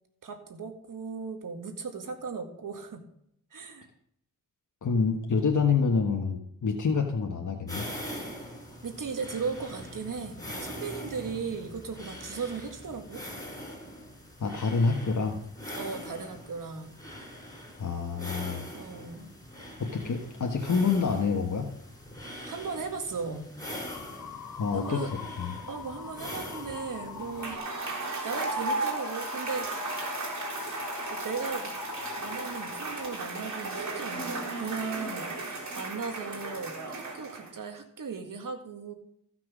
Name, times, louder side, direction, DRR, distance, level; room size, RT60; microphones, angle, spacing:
voice 1, 0.2-3.0 3.5-3.9 8.8-13.2 15.8-16.9 18.7-19.3 22.5-23.5 24.7-25.1 25.7-27.6 28.2-29.7 31.0-31.7 32.2-38.9, right 5 dB, 75° right, 6 dB, 1.9 m, -37 dB
voice 2, 4.8-7.9 14.4-15.4 17.8-18.7 19.8-21.7 24.6-25.1 25.4-25.6, left 5 dB, 60° left, 2 dB, 1.4 m, -27 dB
sound 1, 7.7-27.6, equal, 10° left, 5.2 m, -43 dB
sound 2, 23.9-33.2, left 8 dB, 85° left, 0.9 m, -42 dB
Cheering / Applause / Crowd, 27.2-37.7, right 3 dB, 60° right, 3.6 m, -35 dB
15.0 x 6.0 x 6.2 m, 0.72 s
cardioid pair, 55°, 33 cm